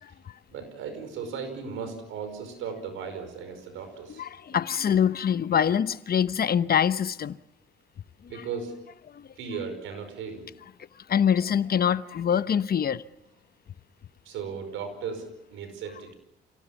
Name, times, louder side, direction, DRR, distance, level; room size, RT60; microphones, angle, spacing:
voice 1, 0.5-4.3 8.3-9.0 9.3-10.6 14.2-16.1, right 6 dB, 85° right, 5.2 m, -36 dB
voice 2, 4.2-7.4 8.2-8.3 9.1-9.3 11.1-13.0, left 8 dB, 50° left, 0.9 m, -24 dB
28.0 x 18.0 x 7.2 m
cardioid pair, 75°, 20 cm